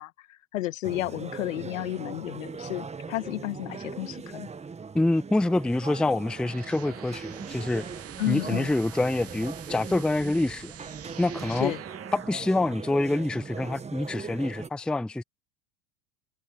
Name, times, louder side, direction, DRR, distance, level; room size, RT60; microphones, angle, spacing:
voice 1, 0.0-4.5 8.2-8.7 11.5-11.8, left 16 dB, 75° left, 2.3 m, -32 dB
sound 1, 0.8-14.7, right 5 dB, 15° right, 1.4 m, -40 dB
voice 2, 4.9-7.8 8.3-10.7 11.2-11.7 12.1-15.2, left 2 dB, ahead, 0.5 m, -26 dB
sound 2, 6.1-12.5, right 10 dB, 35° right, 2.7 m, -44 dB
hypercardioid pair, 80°, 39 cm